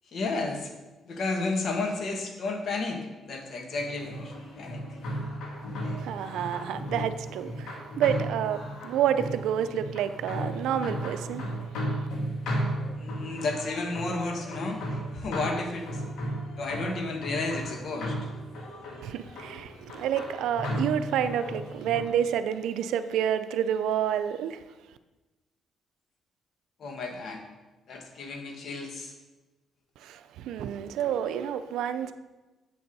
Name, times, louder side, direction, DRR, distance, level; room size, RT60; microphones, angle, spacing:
voice 1, 0.1-0.7 1.1-4.8 13.0-14.8 15.1-15.9 16.6-18.3 26.8-27.4 27.9-29.1, left 3 dB, 60° left, 1.6 m, -32 dB
sound 1, 3.8-22.0, equal, 85° left, 1.9 m, -35 dB
voice 2, 6.0-11.4 19.0-24.6 30.0-32.1, right 9 dB, 85° right, 0.5 m, -29 dB
7.8 x 6.9 x 5.4 m
cardioid pair, 90°, 0 cm